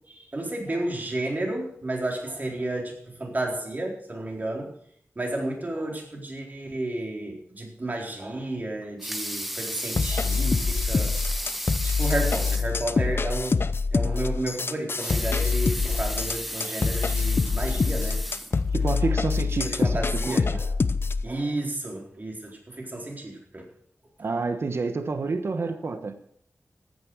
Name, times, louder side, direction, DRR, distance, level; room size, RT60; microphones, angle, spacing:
voice 1, 0.1-2.9 3.2-4.7 5.2-11.5 11.8-13.5 13.9-18.2 19.7-20.8 21.2-23.6 25.6-25.8, right 1 dB, 40° right, 0 dB, 4.2 m, -32 dB
Water tap faucet / Sink (filling or washing) / Liquid, 8.8-12.8 13.2-13.3 13.6-13.7 14.8-19.0 19.6-19.7, equal, ahead, 1.1 m, -34 dB
sound 1, 10.0-21.2, left 4 dB, 55° left, 0.7 m, -25 dB
voice 2, 18.7-20.0 20.3-20.6 24.2-26.2, right 4 dB, 65° right, 9 dB, 1.2 m, -29 dB
14.5 x 9.5 x 6.3 m, 0.63 s
wide cardioid pair, 75°, 5 cm